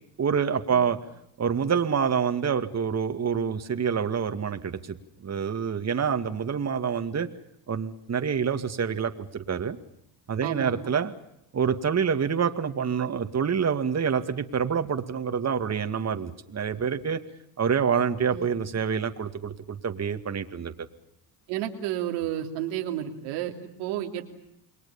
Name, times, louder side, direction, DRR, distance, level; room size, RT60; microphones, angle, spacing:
voice 1, 0.2-1.0 1.4-7.3 7.7-9.8 10.3-11.1 11.5-17.2 17.6-20.7, right 7 dB, 35° right, 7 dB, 2.3 m, -27 dB
voice 2, 10.4-10.7 18.3-18.5 21.5-24.2, right 11 dB, 90° right, 3 dB, 3.2 m, -31 dB
29.0 x 22.0 x 7.2 m, 0.78 s
supercardioid pair, 85°, 44 cm